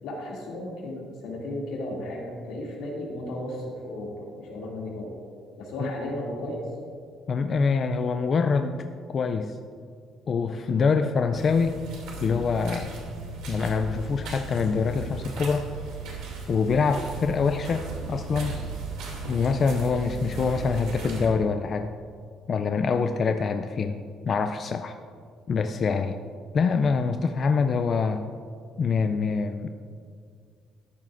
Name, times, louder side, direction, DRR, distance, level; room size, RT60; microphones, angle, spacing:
voice 1, 0.0-5.2 5.6-6.7, left 1 dB, 75° left, -2 dB, 2.5 m, -34 dB
voice 2, 7.3-9.6 10.3-11.8 12.2-12.9 13.5-15.7 16.5-18.6 19.3-21.9 22.5-24.9 25.5-26.2 26.5-28.2 28.8-29.7, left 5 dB, 30° left, 7 dB, 0.3 m, -25 dB
sound 1, 11.3-21.3, right 3 dB, 90° right, 2.5 m, -36 dB
13.5 x 10.5 x 2.5 m, 2.2 s
cardioid pair, 170°, 0 cm